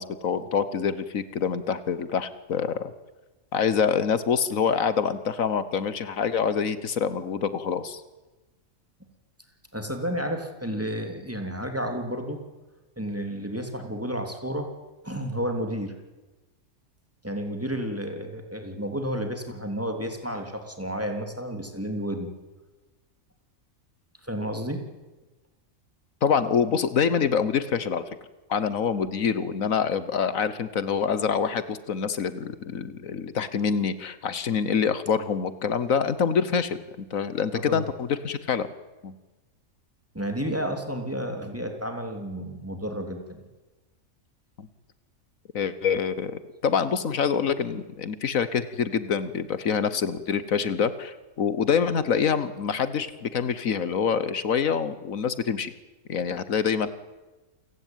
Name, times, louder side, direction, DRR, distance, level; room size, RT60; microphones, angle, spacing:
voice 1, 0.0-2.9 3.5-8.0 26.2-28.0 28.5-36.8 37.1-38.7 39.0-39.1 44.6-44.7 45.5-55.7 56.1-56.9, left 6 dB, 75° left, 14 dB, 1.5 m, -26 dB
voice 2, 9.7-12.4 13.0-14.7 15.0-15.9 17.2-22.3 24.2-24.8 37.5-37.8 40.1-43.4, equal, 10° right, 4 dB, 3.2 m, -31 dB
28.5 x 17.0 x 9.2 m, 1.2 s
omnidirectional pair, 1.4 m